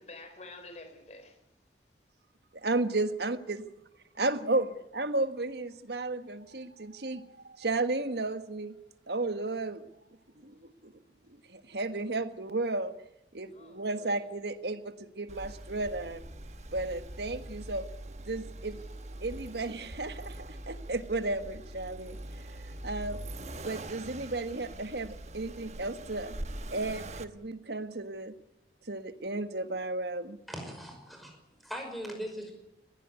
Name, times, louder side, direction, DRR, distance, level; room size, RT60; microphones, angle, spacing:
voice 1, 0.0-1.4 13.5-14.2, left 2 dB, 40° left, 7 dB, 4.4 m, -49 dB
voice 2, 2.5-3.4 4.2-4.7 4.9-8.7 9.1-9.8 10.4-10.9 11.5-12.9 13.3-16.2 16.7-17.9 18.2-18.8 19.2-20.3 20.7-22.2 22.8-23.2 23.6-26.3 26.7-28.3 28.9-30.4, right 2 dB, 65° right, 10 dB, 1.5 m, -33 dB
Accelerating revving vroom, 15.3-27.2, right 1 dB, 40° right, 1.2 m, -43 dB
voice 3, 30.5-32.5, equal, ahead, 3 dB, 5.6 m, -40 dB
20.5 x 16.5 x 9.6 m, 0.88 s
head